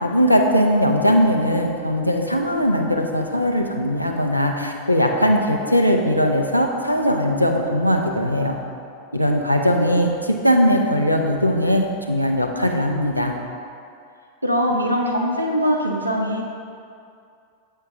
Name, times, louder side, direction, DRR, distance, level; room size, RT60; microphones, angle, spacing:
voice 1, 0.0-8.6 9.1-13.3, equal, 90° left, 2 dB, 0.6 m, -19 dB
voice 2, 14.4-16.4, equal, 85° right, 0 dB, 0.8 m, -21 dB
8.0 x 5.6 x 3.6 m, 2.4 s
figure-of-eight pair, 90°, 0 cm